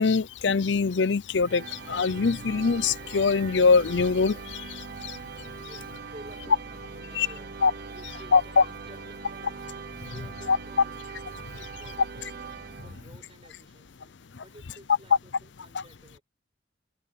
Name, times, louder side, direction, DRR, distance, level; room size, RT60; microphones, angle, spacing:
voice 1, 0.0-4.6 5.0-5.1 7.2-7.3 7.6-7.7 8.3-8.6 10.5-10.6 15.7-15.8, left 4 dB, 70° left, 0.6 m, -23 dB
sound 1, 1.2-6.4, right 4 dB, 90° right, 3.6 m, -54 dB
sound 2, 1.5-13.4, right 4 dB, 60° right, 1.1 m, -41 dB
voice 2, 5.6-9.6 10.0-10.9 11.6-12.3 12.8-16.2, right 1 dB, 30° right, 6.4 m, -52 dB
head